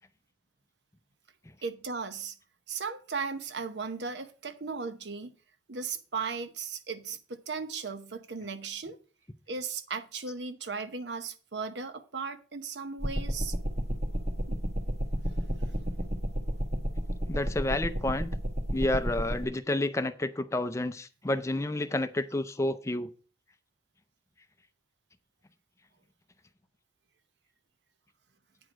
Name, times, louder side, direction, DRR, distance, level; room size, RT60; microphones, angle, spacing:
voice 1, 1.6-2.4 2.7-5.3 5.7-9.0 9.5-13.5 14.5-14.6, right 5 dB, 75° right, 0.9 m, -36 dB
sound 1, 13.0-19.5, equal, 40° right, 1.0 m, -32 dB
voice 2, 17.3-18.3 18.7-23.1, left 1 dB, 15° left, 0.4 m, -30 dB
9.0 x 4.8 x 6.0 m
head